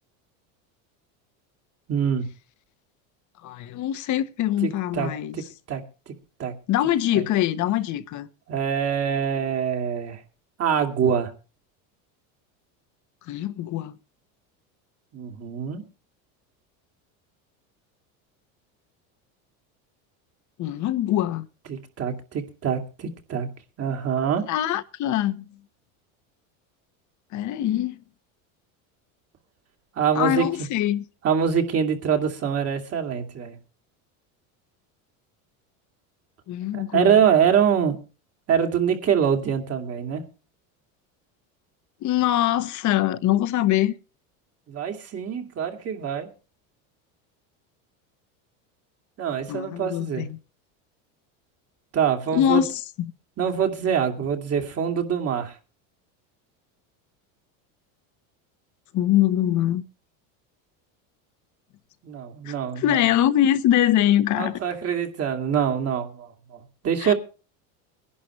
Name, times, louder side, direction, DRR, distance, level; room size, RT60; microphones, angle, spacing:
voice 1, 1.9-2.3 4.6-6.1 6.4-6.5 7.1-7.2 8.5-10.2 10.6-11.3 15.1-15.8 21.7-23.5 23.8-24.4 30.0-30.5 31.2-33.6 36.7-38.0 38.5-40.2 44.7-46.3 49.2-50.2 51.9-52.6 53.4-55.6 62.0-63.0 64.4-67.1, right 8 dB, 35° right, 2.6 m, -24 dB
voice 2, 3.4-5.4 6.7-8.3 13.3-14.0 20.6-21.5 24.5-25.4 27.3-28.0 30.1-31.0 36.5-37.1 42.0-43.9 49.5-50.4 52.3-53.1 58.9-59.8 62.4-64.6 67.0-67.1, left 12 dB, 45° left, 1.2 m, -23 dB
22.0 x 11.0 x 3.2 m
supercardioid pair, 125°, 40 cm